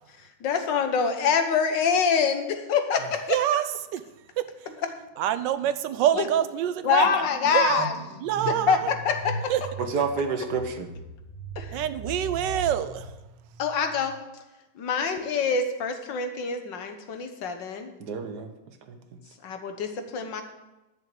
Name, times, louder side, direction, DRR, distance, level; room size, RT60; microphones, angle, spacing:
voice 1, 0.4-3.2 6.2-6.3 6.8-7.9 8.5-9.4 11.6-11.8 13.6-14.2 14.8-17.9 19.4-20.4, left 6 dB, 90° left, 6 dB, 1.8 m, -25 dB
voice 2, 3.3-4.0 4.4-4.7 5.2-7.9 8.2-8.9 9.5-9.6 11.7-13.2, right 11 dB, 85° right, 13 dB, 1.4 m, -26 dB
sound 1, 4.7-5.0 5.3-14.0, right 1 dB, 10° right, 2.0 m, -40 dB
voice 3, 9.8-10.9 18.0-19.2, right 5 dB, 65° right, 7 dB, 1.6 m, -30 dB
11.0 x 6.6 x 7.7 m, 1.0 s
omnidirectional pair, 1.9 m